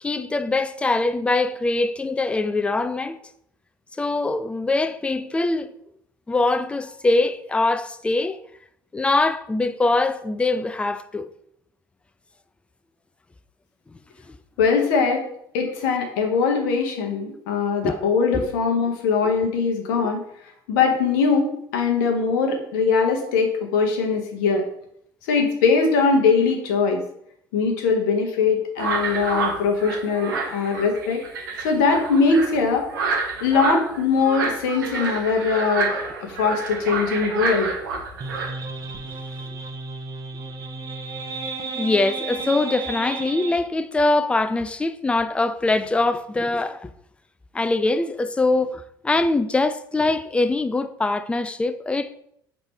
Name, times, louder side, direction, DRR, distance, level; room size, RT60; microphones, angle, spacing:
voice 1, 0.0-3.2 4.0-5.7 6.3-8.4 8.9-11.3 14.3-14.4 17.8-17.9 18.3-18.5 20.0-20.1 41.7-46.9 47.5-52.2, left 2 dB, 10° left, 0.3 m, -23 dB
voice 2, 14.6-15.2 15.5-20.2 20.7-24.6 25.3-27.0 27.5-31.2 31.6-32.9 33.4-35.9 36.2-37.7, left 5 dB, 65° left, 0.9 m, -21 dB
sound 1, 28.8-38.5, right 4 dB, 75° right, 0.7 m, -28 dB
sound 2, 38.2-43.6, right 3 dB, 35° right, 0.8 m, -33 dB
5.1 x 3.1 x 3.3 m
figure-of-eight pair, 60°, 11 cm